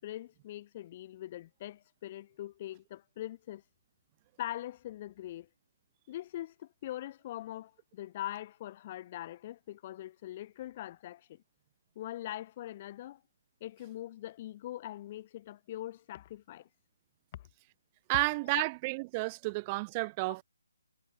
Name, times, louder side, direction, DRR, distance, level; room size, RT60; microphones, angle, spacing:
voice 1, 0.0-3.6 4.4-5.5 6.1-11.4 11.9-13.2 13.6-16.7 17.3-17.5, left 13 dB, 30° left, 3.1 m, -42 dB
voice 2, 18.1-20.4, right 25 dB, 20° right, 1.3 m, -31 dB
figure-of-eight pair, 160°, 0 cm